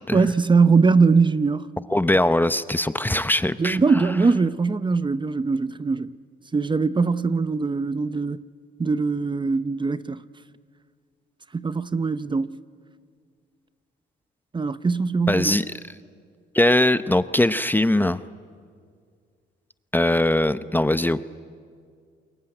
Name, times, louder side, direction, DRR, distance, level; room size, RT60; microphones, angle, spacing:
voice 1, 0.1-1.7 3.6-6.1 6.5-8.4 8.8-10.2 11.5-12.5 14.5-15.6, right 4 dB, 25° right, 0.7 m, -21 dB
voice 2, 1.9-3.8 15.3-15.6 16.5-18.2 19.9-21.2, left 1 dB, 10° left, 0.7 m, -21 dB
28.5 x 22.0 x 9.0 m
cardioid pair, 90°, 20 cm